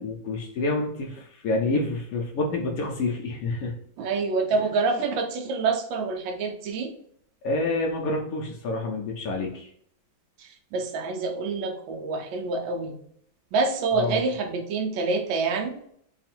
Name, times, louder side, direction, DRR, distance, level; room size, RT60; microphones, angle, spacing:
voice 1, 0.0-3.7 7.4-9.7 13.9-14.2, left 2 dB, 80° left, 0 dB, 0.8 m, -28 dB
voice 2, 4.0-6.9 10.4-13.0 13.5-15.8, right 4 dB, 75° right, 4 dB, 1.4 m, -27 dB
3.5 x 2.4 x 4.2 m, 0.68 s
omnidirectional pair, 2.1 m